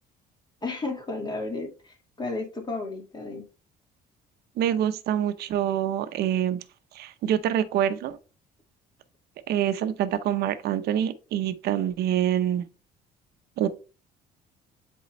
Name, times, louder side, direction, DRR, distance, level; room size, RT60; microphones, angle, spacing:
voice 1, 0.6-3.4, left 3 dB, 25° left, 2.1 m, -33 dB
voice 2, 4.6-6.6 6.9-8.2 9.5-12.6 13.6-13.7, right 10 dB, 70° right, 0.8 m, -26 dB
8.2 x 3.8 x 3.2 m
cardioid pair, 110°, 17 cm